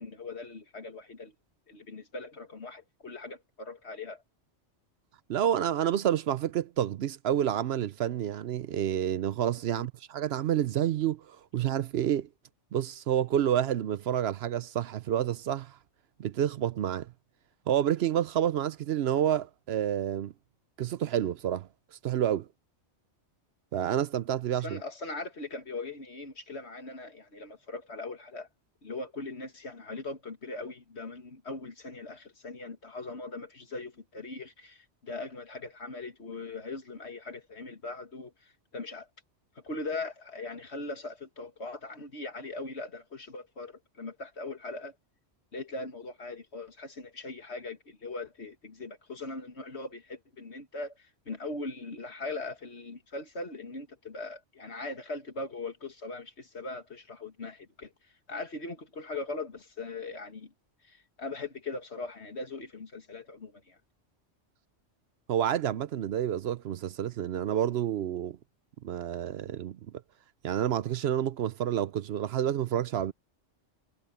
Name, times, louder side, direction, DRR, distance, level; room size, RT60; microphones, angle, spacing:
voice 1, 0.0-1.3 1.7-4.2 9.7-9.9 24.6-28.5 28.8-39.1 39.6-44.9 45.5-60.5 60.8-63.8, left 3 dB, 65° left, 2.3 m, -40 dB
voice 2, 5.3-12.3 12.7-15.8 16.2-17.1 17.7-20.3 20.8-21.7 22.0-22.5 23.7-24.8 65.3-68.4 68.8-69.8 70.4-73.1, right 10 dB, 65° right, 0.8 m, -29 dB
omnidirectional pair, 1.2 m